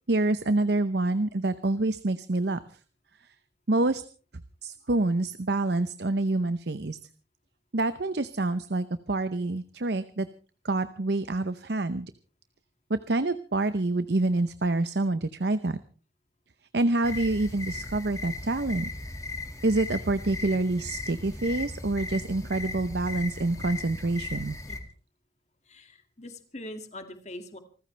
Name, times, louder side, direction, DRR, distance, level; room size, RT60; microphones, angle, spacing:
voice 1, 0.1-2.6 3.7-4.0 4.6-7.0 7.7-10.3 10.6-12.1 12.9-15.8 16.7-18.9 19.6-24.6, right 2 dB, 60° right, 12 dB, 0.8 m, -27 dB
sound 1, 17.0-24.8, left 2 dB, 20° left, 1.9 m, -37 dB
voice 2, 25.7-27.6, left 1 dB, 35° left, 7 dB, 2.2 m, -42 dB
27.0 x 14.5 x 3.3 m, 0.38 s
head